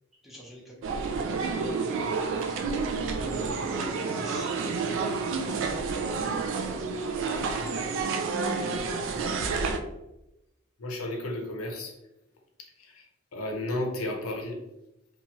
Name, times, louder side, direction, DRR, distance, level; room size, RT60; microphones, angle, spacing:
voice 1, 0.2-1.1 3.1-6.8 8.6-9.7, equal, ahead, -4 dB, 0.6 m, -45 dB
sound 1, 0.8-9.8, right 4 dB, 60° right, 0.3 m, -29 dB
voice 2, 10.8-11.9 12.6-14.6, left 1 dB, 85° left, 1 dB, 0.6 m, -34 dB
2.8 x 2.3 x 2.8 m, 0.92 s
head